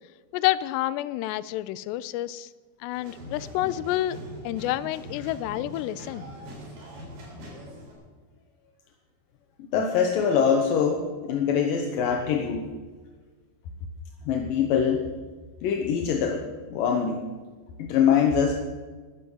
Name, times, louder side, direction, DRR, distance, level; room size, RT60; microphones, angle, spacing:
voice 1, 0.3-2.5 2.8-6.3, left 14 dB, 85° left, 17 dB, 2.7 m, -29 dB
sound 1, 2.9-7.9, equal, 70° right, 5.9 m, -42 dB
voice 2, 9.7-12.7 14.3-15.0 15.6-16.4 16.7-17.2 17.8-18.5, left 7 dB, 70° left, 3 dB, 2.4 m, -23 dB
13.5 x 11.0 x 7.7 m, 1.4 s
omnidirectional pair, 4.8 m